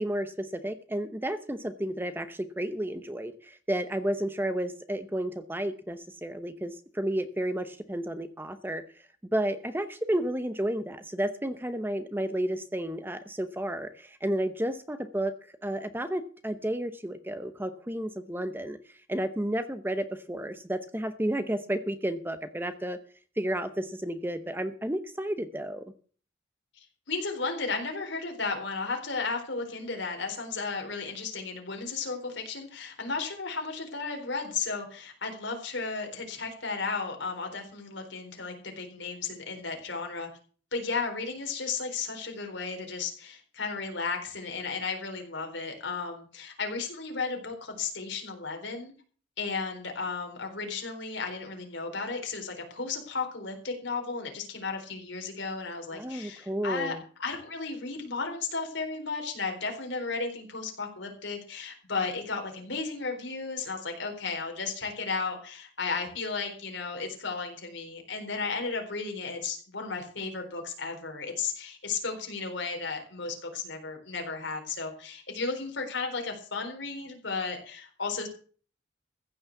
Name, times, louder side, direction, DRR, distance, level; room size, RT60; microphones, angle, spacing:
voice 1, 0.0-8.8 9.3-15.3 15.6-18.8 19.1-23.0 23.4-25.8 55.9-57.0, right 1 dB, 10° right, 11 dB, 0.8 m, -32 dB
voice 2, 26.8-40.3 40.7-48.9 49.4-56.9 57.2-78.3, left 4 dB, 70° left, 3 dB, 4.1 m, -34 dB
15.0 x 6.4 x 8.1 m, 0.42 s
head